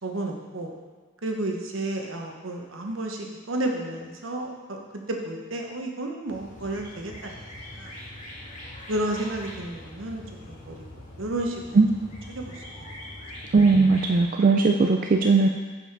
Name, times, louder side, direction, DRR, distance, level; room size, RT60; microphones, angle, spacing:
voice 1, 0.0-0.8 1.2-4.8 5.1-7.4 7.7-7.9 8.9-10.8 11.2-11.8 12.3-12.9, right 1 dB, 75° right, 1 dB, 1.0 m, -32 dB
sound 1, 6.3-14.2, left 1 dB, 40° left, 1.8 m, -42 dB
voice 2, 13.5-15.5, right 4 dB, 40° right, 2 dB, 0.4 m, -18 dB
7.1 x 5.6 x 4.7 m, 1.5 s
head